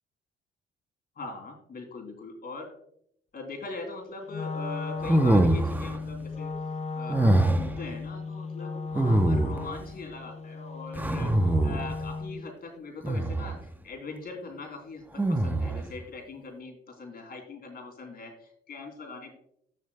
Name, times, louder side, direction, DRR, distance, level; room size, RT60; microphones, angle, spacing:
voice 1, 1.2-2.8 3.3-6.5 6.9-19.4, left 3 dB, 50° left, 2 dB, 3.0 m, -41 dB
Wind instrument woodwind instrument, 4.3-12.5, left 4 dB, 35° left, 0.7 m, -36 dB
sound 1, 5.0-6.0 7.1-7.8 8.9-9.8 10.9-12.0 13.0-13.6 15.2-15.9, right 1 dB, 10° right, 0.7 m, -24 dB
15.0 x 6.5 x 2.2 m, 0.71 s
cardioid pair, 90°, 20 cm